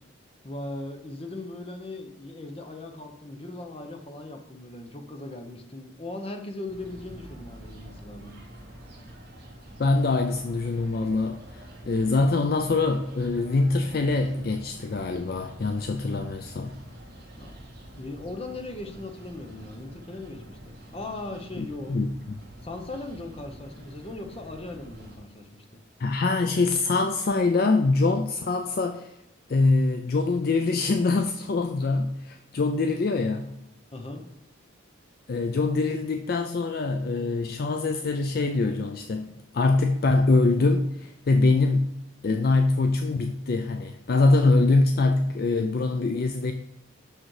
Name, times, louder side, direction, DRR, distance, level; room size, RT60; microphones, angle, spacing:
voice 1, 0.4-8.3 17.4-17.5 18.0-22.0 22.6-25.8 33.9-34.2, left 2 dB, 30° left, 4 dB, 0.9 m, -38 dB
sound 1, 6.7-25.2, right 1 dB, 50° right, 1.7 m, -46 dB
voice 2, 9.8-16.7 21.6-22.1 26.0-29.1 29.5-33.5 35.3-41.9 42.2-46.5, left 3 dB, 45° left, 7 dB, 0.4 m, -24 dB
6.4 x 6.1 x 4.7 m, 0.87 s
head